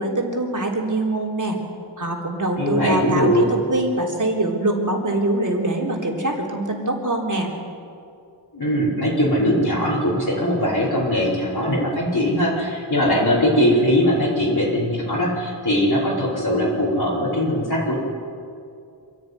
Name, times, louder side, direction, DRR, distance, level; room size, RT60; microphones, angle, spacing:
voice 1, 0.0-1.6 2.0-7.5, right 1 dB, 40° right, -1 dB, 3.9 m, -23 dB
voice 2, 2.6-3.5 8.5-18.0, equal, 50° left, -7 dB, 5.0 m, -20 dB
27.0 x 11.0 x 9.6 m, 2.5 s
wide cardioid pair, 60°, 47 cm